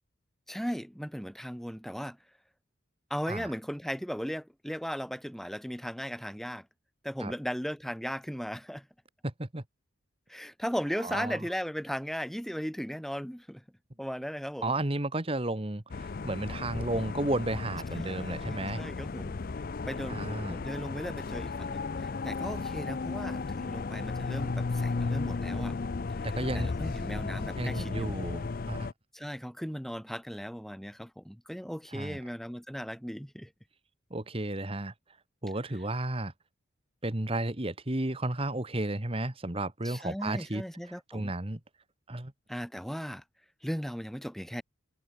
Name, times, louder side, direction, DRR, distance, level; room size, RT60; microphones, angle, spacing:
voice 1, 0.5-2.2 3.1-6.7 7.0-8.9 10.3-13.6 14.0-14.8 18.0-19.4 19.9-20.2 20.5-25.7 26.1-28.1 29.1-33.5 39.8-41.3 42.5-43.2 43.6-44.6, equal, ahead, 2.6 m, -37 dB
voice 2, 9.2-9.6 11.0-11.4 14.6-18.8 20.1-20.6 26.2-26.7 27.5-28.9 31.9-32.2 34.1-34.9 35.4-36.3 37.0-40.6 41.1-41.6 42.1-42.3, right 1 dB, 25° right, 1.4 m, -33 dB
sound 1, 15.9-28.9, left 4 dB, 45° left, 0.5 m, -34 dB
head